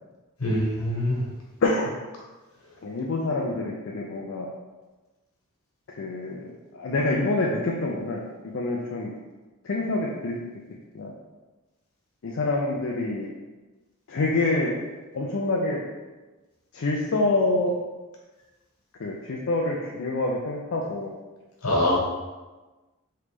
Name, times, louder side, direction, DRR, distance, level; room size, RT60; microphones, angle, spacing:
voice 1, 0.4-1.2 21.6-22.0, left 1 dB, 80° left, -4 dB, 1.4 m, -23 dB
voice 2, 1.6-1.9 2.8-4.5 5.9-8.2 8.5-9.1 9.6-10.4 10.9-11.1 12.2-13.3 14.1-14.7 15.1-15.8 16.7-17.7 19.0-21.1, left 2 dB, 60° left, -2 dB, 0.5 m, -26 dB
3.8 x 3.3 x 3.4 m, 1.2 s
head